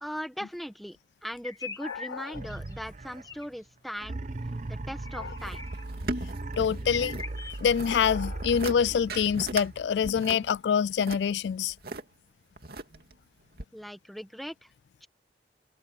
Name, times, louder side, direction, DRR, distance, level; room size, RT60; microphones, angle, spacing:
voice 1, 0.0-4.2 4.7-5.6 13.7-14.7 15.0-15.1, equal, ahead, 1.4 m, -39 dB
sound 1, 1.4-2.8 3.2-3.5 5.0-5.8 6.4-6.5 6.8-7.7, left 4 dB, 20° left, 1.3 m, -41 dB
voice 2, 1.8-2.2 5.2-5.3 6.6-7.2 7.6-11.7, left 7 dB, 75° left, 0.3 m, -26 dB
sound 2, 2.3-3.5 4.0-9.9, right 2 dB, 40° right, 0.8 m, -38 dB
sound 3, 5.4-7.2 7.5-8.0 8.4-8.8 9.1-9.7 10.0-12.0 12.6-13.1 13.6-13.7, right 2 dB, 55° right, 2.6 m, -37 dB
head